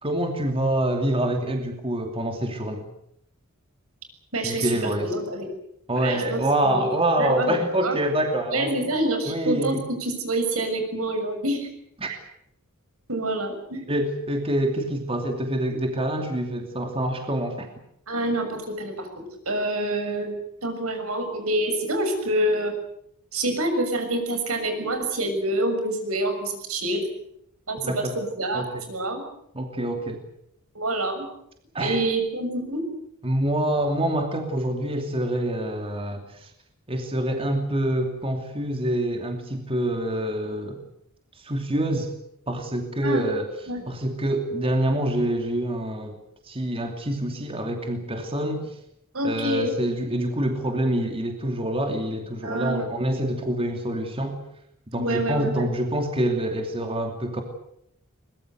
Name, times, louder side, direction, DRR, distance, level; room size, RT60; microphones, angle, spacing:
voice 1, 0.0-2.9 4.4-5.1 5.9-9.0 9.3-9.8 12.0-12.1 13.9-17.7 27.8-28.2 28.5-28.8 29.5-30.2 31.7-32.0 33.2-36.5 36.9-40.8 41.4-42.1 42.5-43.5 43.9-46.2 46.4-48.8 49.2-54.4 54.9-57.4, right 1 dB, 25° right, 4 dB, 2.8 m, -26 dB
voice 2, 4.3-5.5 5.9-6.9 7.2-8.0 8.5-11.7 12.1-12.2 13.1-13.8 18.1-22.7 23.3-27.0 27.7-29.2 30.7-31.3 31.8-32.8 43.0-43.3 43.7-43.9 49.1-49.8 52.4-53.0 55.0-55.7, right 1 dB, 80° right, 6 dB, 6.7 m, -27 dB
23.0 x 21.5 x 8.0 m, 0.75 s
head